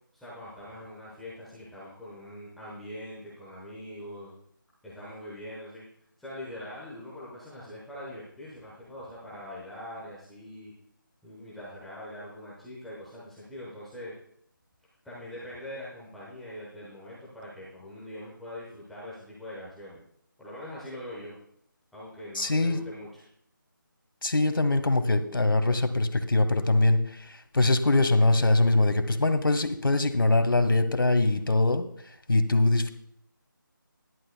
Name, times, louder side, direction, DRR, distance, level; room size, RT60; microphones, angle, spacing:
voice 1, 0.1-4.3 4.8-5.8 6.2-10.7 11.2-14.1 15.0-20.0 20.4-21.4 21.9-23.2, left 1 dB, ahead, -9 dB, 1.0 m, -42 dB
voice 2, 22.3-22.8 24.2-31.8 32.3-32.9, left 2 dB, 75° left, 9 dB, 1.3 m, -23 dB
14.5 x 11.0 x 2.2 m, 0.69 s
figure-of-eight pair, 170°, 11 cm